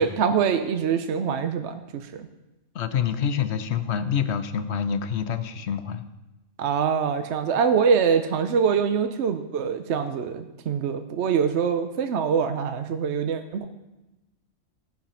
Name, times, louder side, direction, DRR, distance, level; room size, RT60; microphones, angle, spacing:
voice 1, 0.0-2.3 6.6-13.6, right 6 dB, 60° right, 8 dB, 0.9 m, -24 dB
voice 2, 2.7-6.0, left 7 dB, 60° left, 11 dB, 0.9 m, -27 dB
16.5 x 5.8 x 5.7 m, 1.0 s
omnidirectional pair, 1.4 m